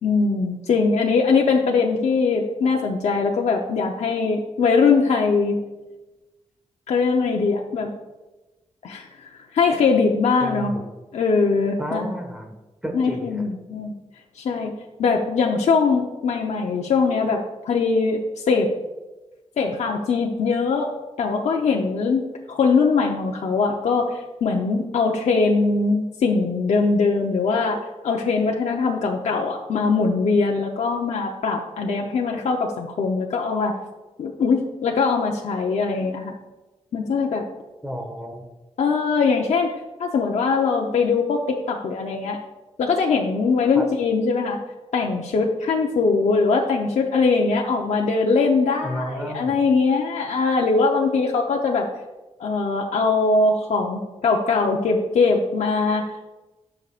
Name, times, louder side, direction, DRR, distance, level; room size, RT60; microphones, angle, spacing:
voice 1, 0.0-5.6 6.9-7.9 8.8-10.7 11.1-12.1 12.9-13.9 14.4-14.7 15.0-18.7 19.6-20.9 21.2-22.2 22.5-27.8 28.0-33.8 34.2-36.3 36.9-37.4 38.8-39.7 40.0-42.4 42.8-44.6 44.9-51.9 52.4-56.1, left 4 dB, 90° left, 0 dB, 0.8 m, -21 dB
voice 2, 10.4-10.8 11.8-12.6 12.8-13.4 37.8-38.4 43.7-43.8 48.8-49.6, equal, 5° right, 2 dB, 1.5 m, -31 dB
18.5 x 6.4 x 2.5 m, 1.1 s
wide cardioid pair, 145°, 12 cm